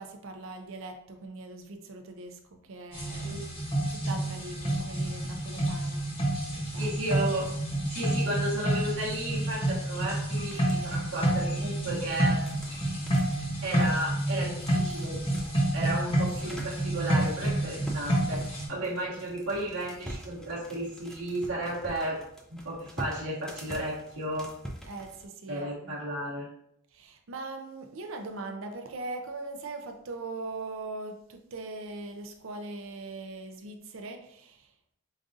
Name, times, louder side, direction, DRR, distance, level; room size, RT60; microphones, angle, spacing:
voice 1, 0.0-3.4 3.9-6.1 6.6-6.9 16.1-16.6 24.8-25.9 26.9-34.7, right 2 dB, 65° right, 5 dB, 0.5 m, -41 dB
sound 1, 2.9-18.7, right 1 dB, 25° left, 0.9 m, -29 dB
voice 2, 3.2-3.6 6.8-7.5 7.9-12.4 13.6-15.2 15.7-22.2 22.5-24.5 25.5-26.5, right 1 dB, 85° right, -7 dB, 1.0 m, -33 dB
sound 2, 10.5-11.5 11.9-25.2, right 1 dB, 5° left, 0.4 m, -45 dB
5.1 x 2.4 x 2.6 m, 0.73 s
head